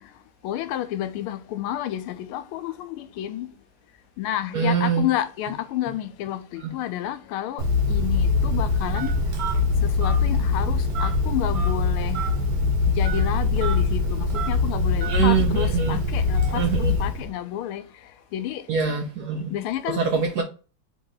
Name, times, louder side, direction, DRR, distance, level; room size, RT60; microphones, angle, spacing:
voice 1, 0.4-3.5 4.2-9.1 9.8-12.2 12.9-17.8 18.3-18.6 19.5-20.2, left 12 dB, 90° left, 1.5 m, -30 dB
voice 2, 4.5-5.1 15.1-16.0 16.5-16.9 18.7-19.5 19.9-20.4, right 6 dB, 70° right, 0.9 m, -23 dB
Telephone, 7.6-17.3, left 3 dB, 55° right, 1.3 m, -23 dB
4.0 x 3.0 x 3.8 m
omnidirectional pair, 2.3 m